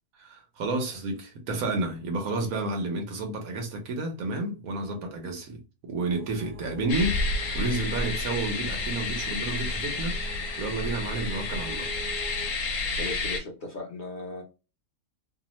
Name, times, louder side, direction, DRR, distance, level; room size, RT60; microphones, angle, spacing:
voice 1, 0.2-7.2 7.5-10.2 10.6-11.9, right 2 dB, 75° right, 1.2 m, -31 dB
sound 1, 6.1-12.5, equal, 60° right, 1.1 m, -44 dB
sound 2, 6.9-13.4, left 2 dB, 75° left, 1.1 m, -30 dB
voice 2, 13.0-14.4, left 2 dB, 55° left, 0.6 m, -37 dB
2.9 x 2.0 x 2.9 m
omnidirectional pair, 1.5 m